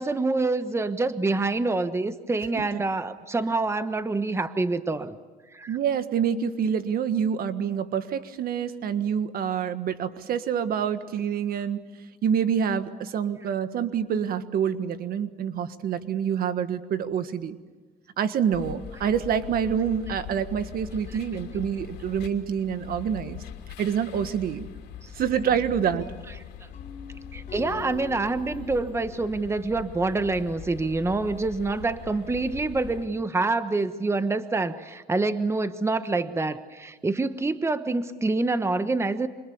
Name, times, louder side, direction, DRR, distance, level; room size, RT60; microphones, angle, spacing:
voice 1, 0.0-5.2 5.5-5.8 27.3-39.3, right 3 dB, 15° right, 11 dB, 1.2 m, -26 dB
voice 2, 5.7-11.8 12.2-17.6 18.2-23.4 23.8-24.7 25.1-26.1, right 8 dB, 60° right, 11 dB, 1.6 m, -27 dB
sound 1, 18.5-33.1, left 9 dB, 85° left, 2.9 m, -42 dB
sound 2, 25.3-30.2, left 6 dB, 45° left, 3.9 m, -45 dB
28.0 x 26.0 x 7.2 m, 1.3 s
cardioid pair, 110°, 17 cm